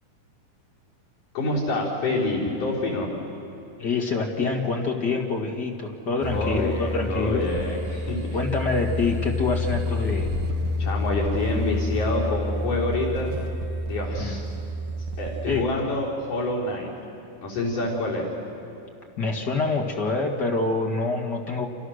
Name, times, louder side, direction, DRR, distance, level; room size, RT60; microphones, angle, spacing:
voice 1, 1.3-3.1 6.2-8.4 10.8-13.3 13.8-14.4 15.2-16.9 17.4-18.3, left 2 dB, 75° left, -5 dB, 5.7 m, -27 dB
voice 2, 3.8-7.5 8.3-10.3 14.2-14.4 15.4-15.7 19.2-21.7, left 3 dB, 35° left, 1 dB, 2.1 m, -26 dB
sound 1, 6.2-15.6, left 1 dB, 80° right, 3.1 m, -29 dB
28.5 x 28.0 x 6.6 m, 2.7 s
omnidirectional pair, 3.8 m